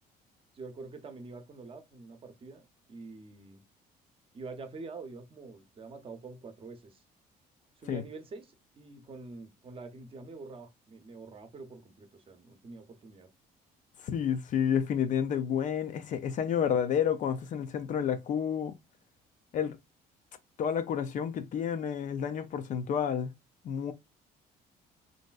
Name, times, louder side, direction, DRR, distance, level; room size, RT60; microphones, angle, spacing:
voice 1, 0.5-3.6 4.3-7.0 7.8-13.3, right 3 dB, 35° right, 0.6 m, -46 dB
voice 2, 14.0-18.8 19.5-19.8 20.6-23.3 23.6-23.9, left 8 dB, 50° left, 0.4 m, -30 dB
3.1 x 2.6 x 2.3 m
cardioid pair, 110°, 17 cm